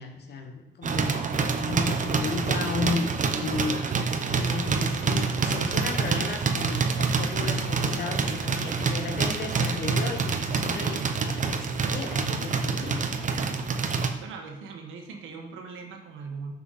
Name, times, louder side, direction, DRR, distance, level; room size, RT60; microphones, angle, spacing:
voice 1, 0.0-3.1 3.4-13.1, left 4 dB, 55° left, 4 dB, 1.2 m, -34 dB
sound 1, 0.8-14.1, right 4 dB, 40° right, 0.8 m, -27 dB
voice 2, 11.0-11.4 13.2-13.7 14.2-16.5, right 4 dB, 85° right, 3 dB, 1.3 m, -39 dB
6.1 x 5.6 x 4.0 m, 1.0 s
cardioid pair, 90°, 20 cm